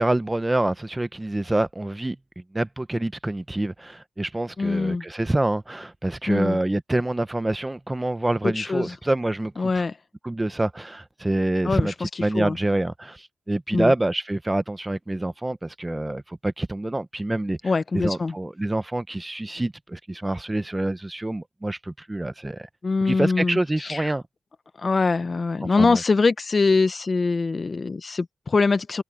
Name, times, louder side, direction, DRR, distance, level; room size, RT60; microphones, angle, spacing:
voice 1, 0.0-2.2 2.5-9.8 10.2-17.6 17.9-22.7 23.0-24.2 25.8-26.0, right 1 dB, 15° right, 0.9 m, -26 dB
voice 2, 4.6-5.0 6.3-6.6 8.4-8.9 9.6-10.0 11.6-12.1 12.3-12.6 13.7-13.9 17.6-18.3 22.8-24.1 24.8-29.0, left 4 dB, 40° left, 0.9 m, -23 dB
cardioid pair, 80°, 0 cm